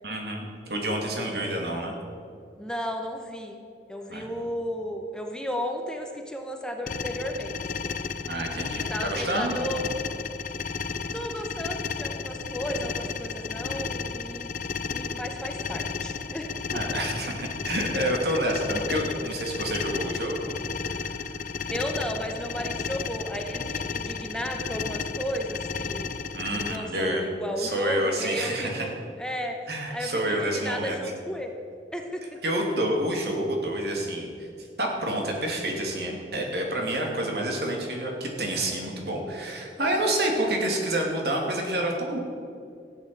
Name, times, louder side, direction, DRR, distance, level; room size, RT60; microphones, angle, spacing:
voice 1, 0.0-2.0 4.1-4.5 8.3-9.5 16.7-20.6 20.9-21.2 26.3-27.2 27.6-28.8 29.7-31.0 32.4-34.3 34.6-42.2, right 1 dB, 65° right, 1 dB, 2.7 m, -28 dB
voice 2, 1.0-1.5 2.6-3.6 3.9-7.6 8.8-9.8 11.1-14.6 14.9-17.0 21.7-26.1 26.6-31.6 31.9-32.4 39.8-40.2, equal, 5° left, 3 dB, 0.9 m, -34 dB
sound 1, 6.9-26.8, left 5 dB, 45° left, 0.5 m, -33 dB
14.0 x 8.9 x 7.7 m, 2.4 s
head